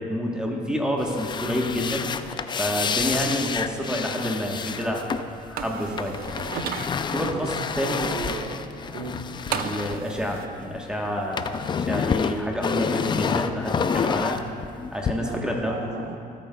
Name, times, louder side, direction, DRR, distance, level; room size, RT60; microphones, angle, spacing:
voice 1, 0.0-2.0 2.6-5.0 5.4-6.1 7.1-8.1 9.5-14.4 14.9-15.8, equal, 5° right, -1 dB, 1.1 m, -28 dB
sound 1, 1.0-10.8 11.0-15.1, left 6 dB, 25° left, 0.4 m, -29 dB
voice 2, 1.4-1.9 7.2-9.3 15.1-16.2, right 3 dB, 85° right, 2 dB, 1.2 m, -35 dB
sound 2, 5.6-6.9 9.5-10.5, right 9 dB, 60° right, 0.5 m, -33 dB
18.5 x 8.9 x 2.3 m, 2.4 s
cardioid pair, 110°, 17 cm